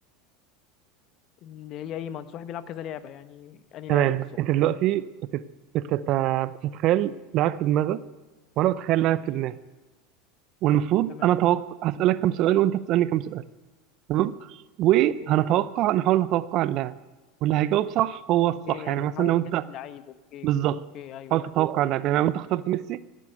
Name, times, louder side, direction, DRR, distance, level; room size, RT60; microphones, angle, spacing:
voice 1, 1.4-4.3 11.1-11.3 15.2-15.4 18.6-20.5 20.9-21.5, left 10 dB, 50° left, 13 dB, 1.1 m, -39 dB
voice 2, 3.9-5.5 5.7-8.0 8.6-9.6 10.6-13.4 14.1-14.3 14.8-16.9 17.4-19.6 20.4-20.8 21.3-23.0, right 13 dB, 50° right, 17 dB, 0.7 m, -23 dB
18.0 x 9.2 x 8.0 m, 1.2 s
hypercardioid pair, 85°, 0 cm